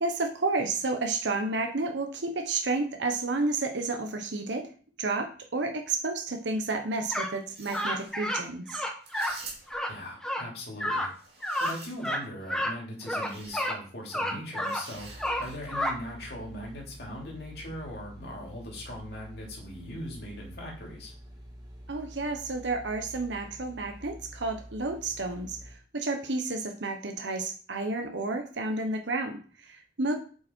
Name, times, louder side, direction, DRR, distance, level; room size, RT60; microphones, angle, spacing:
voice 1, 0.0-4.7 5.0-8.8 21.9-25.6 25.9-30.1, right 3 dB, 75° right, 5 dB, 1.0 m, -31 dB
sound 1, 7.1-7.3 7.7-8.4 8.7-9.3 9.7-9.9 10.2-10.4 10.8-11.1 11.4-11.7 12.0-12.2 12.5-12.7 13.1-13.8 14.1-14.8 15.2-15.9, equal, 5° left, 0.9 m, -30 dB
sound 2, 7.4-8.1 9.0-9.9 11.1-12.2 13.1-13.7 14.6-15.7, right 4 dB, 60° right, 2.5 m, -47 dB
voice 2, 9.9-11.1 11.6-21.1, left 1 dB, 60° left, -2 dB, 2.7 m, -40 dB
sound 3, 14.9-25.7, equal, 20° right, 2.0 m, -47 dB
7.9 x 5.3 x 4.4 m, 0.41 s
head